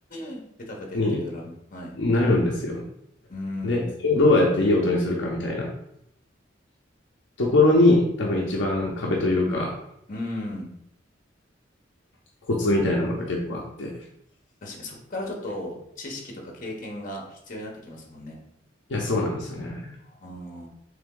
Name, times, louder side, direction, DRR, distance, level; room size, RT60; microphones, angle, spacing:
voice 1, 0.1-2.0 3.3-4.0 10.1-10.7 14.6-18.4 20.0-20.7, left 1 dB, 45° left, 0 dB, 0.9 m, -36 dB
voice 2, 2.0-2.8 3.6-5.7 7.4-9.8 12.5-14.0 18.9-19.9, left 2 dB, 65° left, -2 dB, 0.6 m, -22 dB
3.5 x 3.3 x 3.7 m, 0.75 s
head